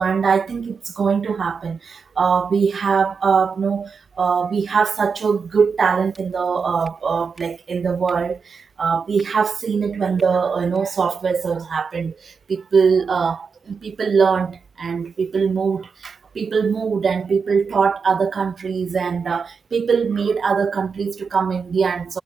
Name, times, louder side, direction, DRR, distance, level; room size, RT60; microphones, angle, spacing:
voice 1, 0.0-22.2, right 5 dB, 70° right, 0.4 m, -21 dB
sound 1, 6.1-6.2 6.8-6.9 7.4-7.5 8.0-8.2 9.1-9.3 10.1-10.3 10.7-10.8, right 1 dB, 15° right, 3.7 m, -48 dB
wide cardioid pair, 165°, 0 cm